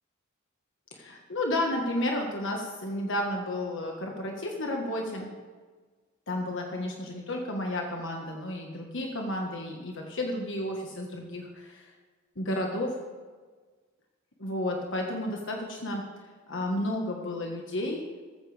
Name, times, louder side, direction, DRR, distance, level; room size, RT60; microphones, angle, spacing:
voice 1, 0.9-5.3 6.3-11.9 12.3-13.0 14.4-16.0 16.5-18.0, left 1 dB, 65° left, 1 dB, 1.5 m, -32 dB
14.5 x 14.0 x 3.5 m, 1.4 s
head